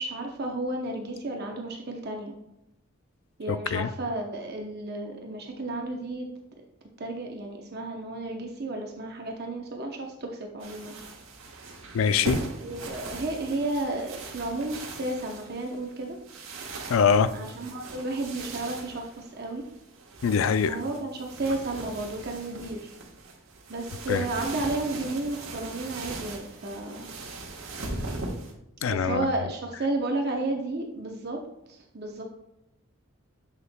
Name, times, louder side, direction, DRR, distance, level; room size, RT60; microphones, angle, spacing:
voice 1, 0.0-2.4 3.4-6.3 7.0-10.9 12.6-16.2 17.3-19.6 20.6-22.9 23.7-27.1 28.8-31.4 31.7-32.2, right 2 dB, 50° right, 2 dB, 0.7 m, -32 dB
voice 2, 3.5-3.9 11.9-12.4 16.9-17.3 20.2-20.8 24.1-24.3 28.8-29.2, left 6 dB, 70° left, 13 dB, 0.4 m, -23 dB
sound 1, 10.6-28.5, right 2 dB, 80° right, 1.3 m, -40 dB
7.3 x 6.6 x 2.2 m, 0.85 s
head